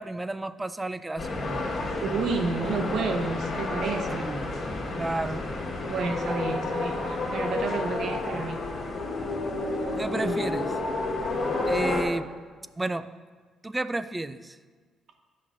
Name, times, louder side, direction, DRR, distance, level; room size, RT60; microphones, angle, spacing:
voice 1, 0.0-1.7 4.2-4.5 4.9-5.5 9.9-10.7 11.7-12.3 12.8-13.1 13.6-14.6, right 2 dB, 15° right, 13 dB, 0.4 m, -32 dB
sound 1, 1.2-12.0, left 2 dB, 50° left, 1.6 m, -30 dB
voice 2, 2.0-4.2 5.9-8.6 10.1-10.4, right 4 dB, 70° right, 4 dB, 1.0 m, -30 dB
15.5 x 5.6 x 2.6 m, 1.4 s
cardioid pair, 90°, 0 cm